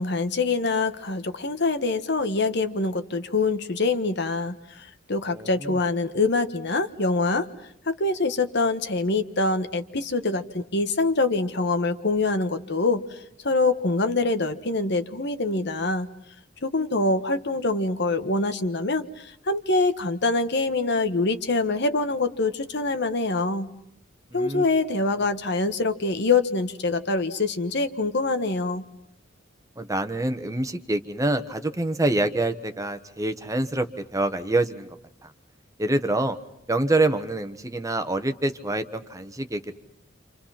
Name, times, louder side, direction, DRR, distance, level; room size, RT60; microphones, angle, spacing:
voice 1, 0.0-7.5 7.9-16.1 16.6-23.7 24.3-28.8, left 3 dB, 60° left, 9 dB, 1.4 m, -25 dB
voice 2, 5.3-5.8 24.3-24.6 29.8-33.9 34.1-34.9 35.8-36.4 36.7-39.7, right 2 dB, 15° right, 8 dB, 1.3 m, -26 dB
29.0 x 27.5 x 5.9 m, 0.75 s
head